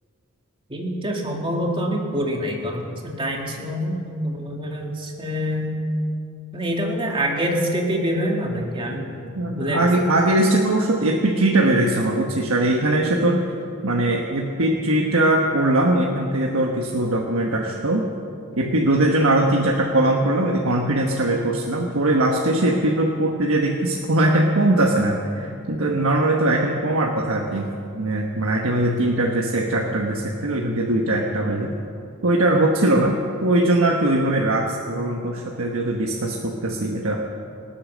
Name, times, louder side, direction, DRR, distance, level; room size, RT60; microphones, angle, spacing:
voice 1, 0.7-5.8 6.5-9.3 9.6-9.9, equal, 25° right, 0 dB, 2.2 m, -26 dB
voice 2, 9.4-13.4 13.8-18.0 18.5-31.7 32.2-37.2, right 1 dB, 75° right, 0 dB, 1.3 m, -21 dB
25.5 x 8.7 x 6.3 m, 2.5 s
head